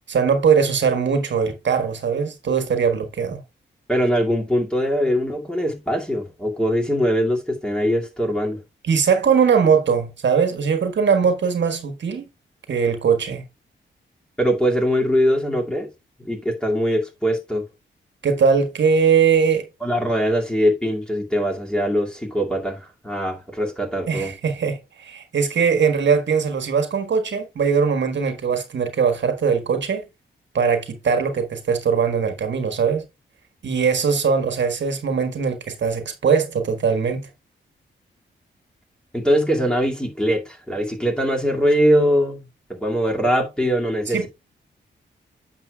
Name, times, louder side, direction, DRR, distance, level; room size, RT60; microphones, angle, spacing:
voice 1, 0.1-3.4 8.8-12.3 12.7-13.4 18.2-19.6 24.1-30.0 30.5-33.0 33.6-37.3 44.1-44.3, right 6 dB, 65° right, 1.4 m, -20 dB
voice 2, 3.9-8.6 14.4-15.9 16.2-17.6 19.8-24.3 39.1-42.4 42.7-44.3, equal, 5° left, 2.3 m, -22 dB
9.5 x 6.7 x 2.3 m
cardioid pair, 80°, 20 cm